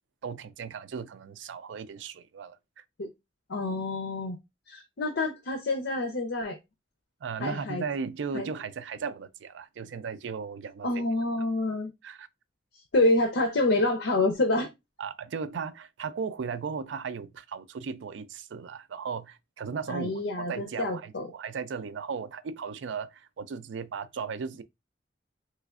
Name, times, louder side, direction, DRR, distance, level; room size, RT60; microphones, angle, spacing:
voice 1, 0.2-2.8 7.2-10.9 12.0-12.3 15.0-20.2 20.5-24.6, right 5 dB, 90° right, 0.4 m, -36 dB
voice 2, 3.5-4.4 4.7-6.6 7.4-7.8 8.3-8.5 10.8-11.9 12.9-14.7 19.9-21.3, left 2 dB, 80° left, 0.6 m, -27 dB
3.3 x 3.1 x 2.4 m
head